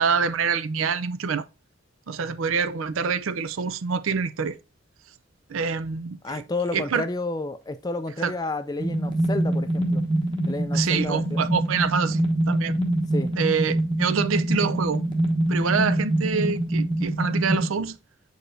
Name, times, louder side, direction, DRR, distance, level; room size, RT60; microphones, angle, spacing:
voice 1, 0.0-1.4 2.1-4.6 5.5-6.4 6.7-7.0 8.2-8.3 10.7-12.8 13.4-15.0 15.5-18.0, right 5 dB, 75° right, 0.5 m, -26 dB
voice 2, 6.2-10.0 10.5-11.4 13.1-13.3, left 2 dB, 20° left, 0.3 m, -31 dB
sound 1, 8.8-17.7, right 1 dB, 25° right, 1.0 m, -25 dB
7.6 x 4.8 x 2.7 m
head